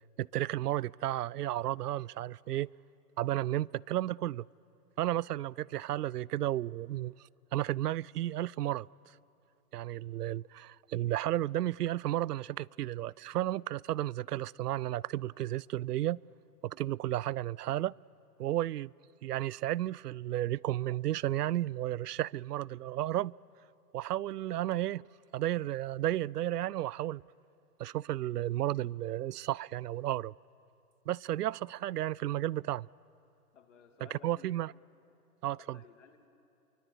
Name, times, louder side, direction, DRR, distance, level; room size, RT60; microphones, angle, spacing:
voice 1, 0.2-2.7 3.2-4.5 5.0-7.1 7.5-8.9 9.7-16.2 16.6-17.9 18.4-18.9 19.2-23.3 23.9-25.0 25.3-27.2 27.8-30.3 31.1-32.9 34.1-34.7 35.4-35.8, right 14 dB, 80° right, 0.5 m, -33 dB
voice 2, 33.5-34.7 35.5-36.3, left 6 dB, 50° left, 2.6 m, -57 dB
29.5 x 24.0 x 8.3 m
hypercardioid pair, 180°, 46 cm